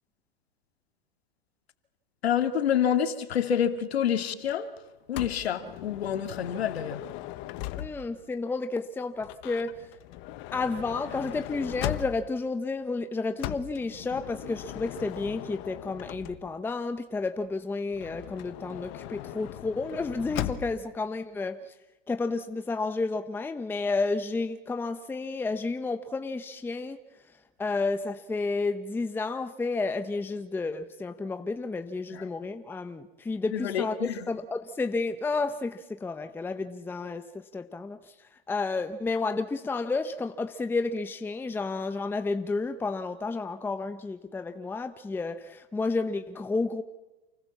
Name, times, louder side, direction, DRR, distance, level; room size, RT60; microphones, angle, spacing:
voice 1, 2.2-4.8 5.1-7.1 10.3-10.5 32.1-32.2 33.5-34.3, left 9 dB, 90° left, 2.5 m, -28 dB
Motor vehicle (road) / Sliding door, 5.2-8.2 9.2-12.5 13.4-16.7 17.9-20.9, left 14 dB, 40° left, 1.2 m, -38 dB
voice 2, 7.8-9.9 10.5-21.7 22.1-27.0 27.6-38.1 38.5-46.8, left 3 dB, 5° left, 0.9 m, -31 dB
29.0 x 20.0 x 7.3 m
supercardioid pair, 140°, 30 cm